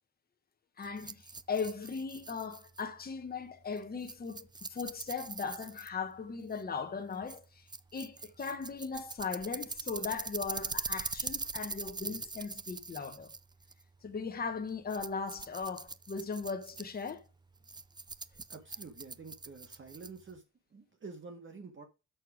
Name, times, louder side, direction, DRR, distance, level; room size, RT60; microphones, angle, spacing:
voice 1, 0.8-7.6 7.9-13.3 14.0-17.3, left 5 dB, 30° left, 1.1 m, -38 dB
Rattle, 0.8-20.4, right 4 dB, 15° right, 0.4 m, -43 dB
voice 2, 18.5-20.4 20.7-21.9, right 4 dB, 45° right, 1.7 m, -48 dB
6.6 x 6.6 x 4.9 m
wide cardioid pair, 145°, 29 cm